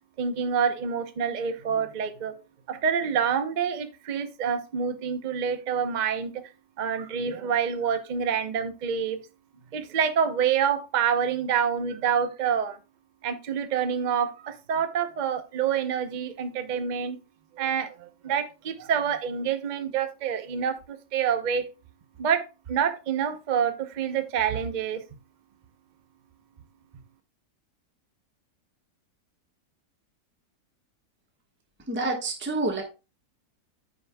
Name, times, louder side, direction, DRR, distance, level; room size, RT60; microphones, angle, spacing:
voice 1, 0.2-2.3 2.7-6.3 6.8-9.2 9.7-12.8 13.2-17.2 17.6-21.7 22.2-22.4 22.7-25.0, right 7 dB, 85° right, 9 dB, 0.4 m, -27 dB
voice 2, 31.9-32.8, right 2 dB, 5° right, 1 dB, 1.1 m, -28 dB
14.0 x 5.3 x 2.2 m, 0.30 s
omnidirectional pair, 1.9 m